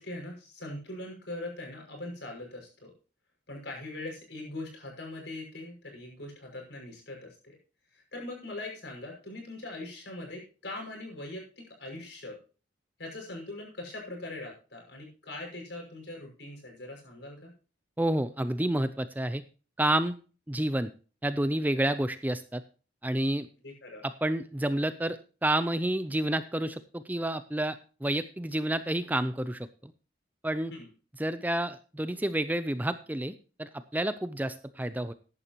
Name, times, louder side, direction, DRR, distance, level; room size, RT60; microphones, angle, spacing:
voice 1, 0.0-2.9 3.5-7.6 7.9-12.4 13.0-17.5 23.6-24.0 30.7-30.9, left 2 dB, 65° left, 1 dB, 5.9 m, -41 dB
voice 2, 18.0-19.4 19.8-20.1 20.5-20.9 21.2-22.6 23.0-23.5 24.0-29.9 30.4-30.7 31.2-35.1, right 1 dB, 10° right, 12 dB, 0.4 m, -29 dB
14.0 x 11.0 x 2.9 m, 0.36 s
head